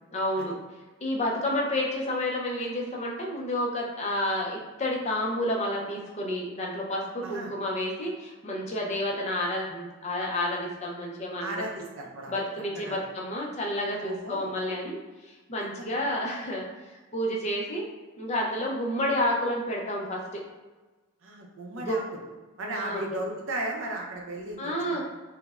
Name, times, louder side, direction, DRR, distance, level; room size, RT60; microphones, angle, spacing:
voice 1, 0.1-0.6 1.0-11.6 12.3-17.8 18.2-20.4 21.7-22.0 22.7-23.0 24.6-25.0, left 1 dB, 30° left, -1 dB, 0.5 m, -30 dB
voice 2, 11.4-12.3 12.9-13.0 14.0-14.5 21.2-22.0 22.6-25.0, right 1 dB, 60° right, 0 dB, 0.5 m, -35 dB
5.0 x 2.1 x 2.4 m, 1.2 s
head